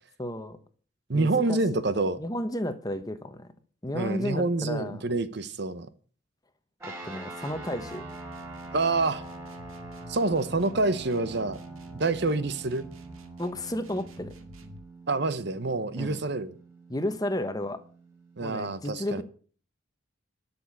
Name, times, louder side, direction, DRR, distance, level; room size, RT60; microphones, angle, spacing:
voice 1, 0.2-0.6 1.1-1.8 2.2-3.5 3.8-5.0 6.8-8.0 13.4-14.3 16.0-16.2 16.9-17.8 18.4-19.2, left 1 dB, 20° left, 1.0 m, -33 dB
voice 2, 1.1-2.2 3.9-5.9 8.7-9.2 10.1-11.6 12.0-12.9 15.1-16.5 18.4-19.2, right 3 dB, 55° right, 0.9 m, -27 dB
sound 1, 6.8-18.6, right 2 dB, 15° right, 4.2 m, -44 dB
sound 2, 7.4-14.9, right 1 dB, 90° right, 1.8 m, -49 dB
11.5 x 7.1 x 8.3 m
head